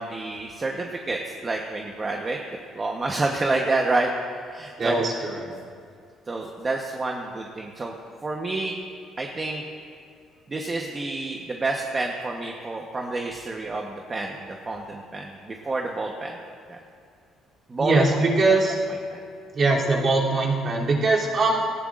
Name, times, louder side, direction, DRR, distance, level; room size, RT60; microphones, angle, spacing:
voice 1, 0.0-2.4 2.7-4.1 4.5-5.0 6.3-7.9 8.2-8.7 9.2-9.6 10.5-16.3 16.7-16.8 17.7-18.0 19.1-19.2, right 2 dB, 25° right, 1 dB, 1.1 m, -28 dB
voice 2, 4.8-5.5 17.8-18.7 19.5-21.7, right 2 dB, 40° right, -5 dB, 3.1 m, -21 dB
18.0 x 17.5 x 2.5 m, 2.3 s
cardioid pair, 120°, 0 cm